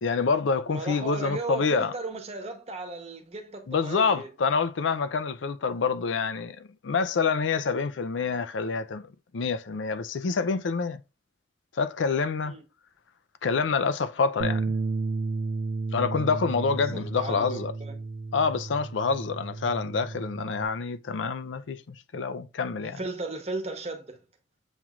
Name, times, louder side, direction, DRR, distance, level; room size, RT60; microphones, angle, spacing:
voice 1, 0.0-1.9 3.7-11.0 11.7-12.5 13.4-14.7 15.9-17.7 18.3-23.0, left 5 dB, 85° left, 0.5 m, -27 dB
voice 2, 0.7-4.3 12.4-12.6 16.9-17.9 22.8-24.2, right 2 dB, 35° right, 0.9 m, -36 dB
Bass guitar, 14.4-20.6, right 3 dB, 65° right, 0.5 m, -32 dB
7.2 x 3.0 x 2.4 m
head